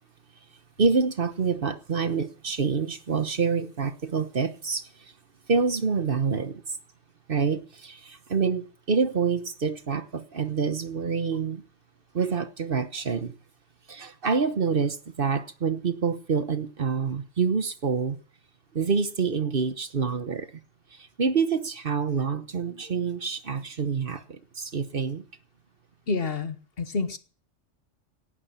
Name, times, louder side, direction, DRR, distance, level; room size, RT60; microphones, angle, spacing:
voice 1, 0.8-5.1 5.5-6.8 7.3-11.6 12.1-13.3 13.9-18.2 18.7-20.6 20.9-25.2, right 5 dB, 50° right, 1.2 m, -27 dB
voice 2, 26.1-27.2, left 4 dB, 55° left, 1.3 m, -29 dB
18.0 x 11.5 x 5.7 m
omnidirectional pair, 1.3 m